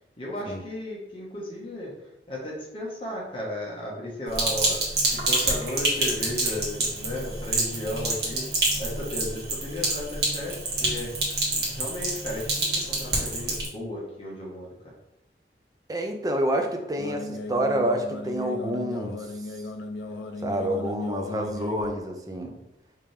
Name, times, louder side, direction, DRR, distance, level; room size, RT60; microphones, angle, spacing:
voice 1, 0.2-1.9 2.3-4.8 5.1-8.5 8.8-11.1 11.5-14.7, left 1 dB, 30° left, -5 dB, 1.2 m, -34 dB
Sink (filling or washing), 4.3-13.7, right 2 dB, 65° right, 1.4 m, -27 dB
voice 2, 15.9-19.3 20.4-22.5, right 1 dB, 20° right, 3 dB, 0.5 m, -28 dB
sound 1, 17.0-22.0, left 2 dB, 75° left, 0.4 m, -36 dB
5.1 x 2.9 x 3.3 m, 0.88 s
head